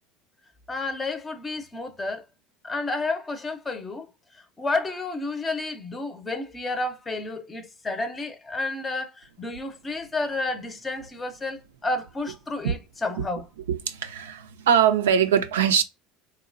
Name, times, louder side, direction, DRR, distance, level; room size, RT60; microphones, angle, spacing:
voice 1, 0.7-2.2 2.6-4.1 4.6-13.4, left 2 dB, 25° left, 0.6 m, -31 dB
voice 2, 13.7-15.8, right 8 dB, 85° right, 0.3 m, -22 dB
2.9 x 2.2 x 2.4 m
hypercardioid pair, 90°, 0 cm